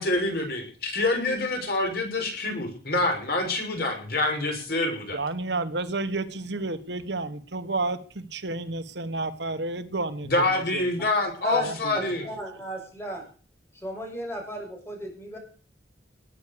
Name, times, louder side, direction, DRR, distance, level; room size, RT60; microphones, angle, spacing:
voice 1, 0.0-5.2 10.2-12.3, left 2 dB, 55° left, 3 dB, 6.3 m, -26 dB
voice 2, 5.1-10.3, right 2 dB, 75° right, 11 dB, 1.4 m, -30 dB
voice 3, 11.9-13.2 13.8-15.4, left 1 dB, 15° left, 2 dB, 6.9 m, -34 dB
20.0 x 9.9 x 6.8 m, 0.40 s
head